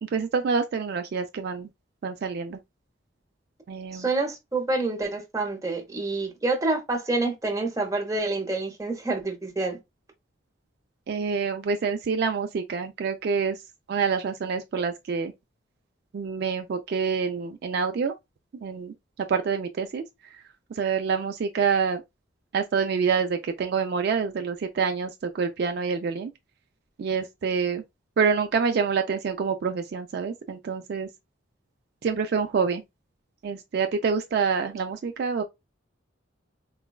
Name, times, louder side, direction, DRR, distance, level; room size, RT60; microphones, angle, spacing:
voice 1, 0.0-1.7 2.0-2.6 3.7-4.1 11.1-13.6 13.9-15.3 16.1-18.1 18.6-20.0 20.7-22.0 22.5-26.3 27.0-27.8 28.2-31.1 32.0-32.8 33.4-35.4, right 5 dB, 55° right, 0.3 m, -27 dB
voice 2, 3.9-9.8, right 2 dB, 15° right, 0.7 m, -27 dB
3.9 x 2.2 x 2.2 m
head